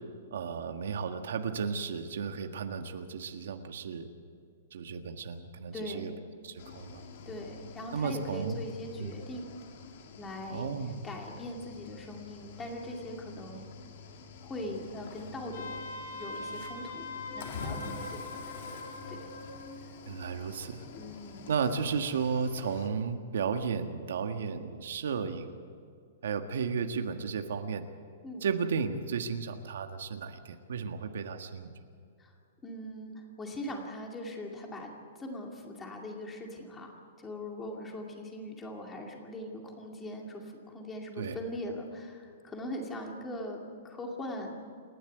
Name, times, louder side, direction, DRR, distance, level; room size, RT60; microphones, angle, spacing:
voice 1, 0.3-4.1 4.7-6.1 6.4-7.0 7.9-8.6 9.0-9.1 10.5-11.0 20.1-20.8 21.5-25.5 26.2-27.8 28.4-31.7 41.2-41.4, right 6 dB, 70° right, 6 dB, 1.7 m, -34 dB
voice 2, 5.7-6.2 7.3-9.5 10.2-10.7 11.0-13.6 14.4-15.8 16.1-17.1 17.3-18.3 18.7-18.8 19.1-19.2 21.0-21.5 28.2-28.5 32.2-32.3 32.6-34.9 35.2-44.6, left 1 dB, 10° left, 1 dB, 2.3 m, -41 dB
Cricket / Waves surf, 6.6-22.9, left 4 dB, 45° left, 2.4 m, -47 dB
Wind instrument woodwind instrument, 15.5-19.7, left 2 dB, 80° left, 5.2 m, -42 dB
29.0 x 12.0 x 9.2 m, 2.3 s
hypercardioid pair, 180°, 0 cm